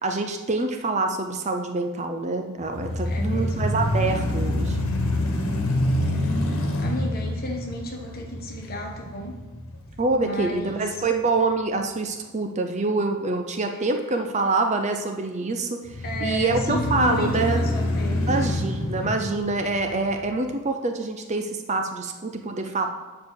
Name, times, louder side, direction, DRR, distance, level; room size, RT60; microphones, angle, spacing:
voice 1, 0.0-4.8 10.0-15.8 16.2-17.7 18.3-22.9, right 3 dB, 30° right, 5 dB, 0.5 m, -26 dB
sound 1, 2.6-10.7 11.2-11.3 15.8-20.3, left 1 dB, 70° left, 1.4 m, -27 dB
voice 2, 3.1-3.5 6.0-9.3 10.2-10.8 13.7-13.8 16.0-18.4, left 1 dB, 40° left, 0 dB, 1.4 m, -33 dB
7.4 x 4.8 x 6.4 m, 1.3 s
head